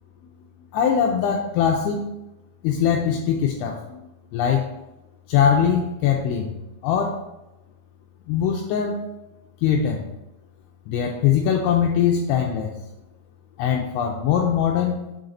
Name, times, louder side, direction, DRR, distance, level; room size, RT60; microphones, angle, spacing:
voice 1, 0.7-2.1 2.6-4.0 4.3-4.7 5.3-7.2 8.3-9.0 9.6-10.1 10.9-12.8 13.6-15.0, left 8 dB, 85° left, 2 dB, 2.7 m, -22 dB
7.2 x 4.0 x 4.0 m, 0.95 s
omnidirectional pair, 5.8 m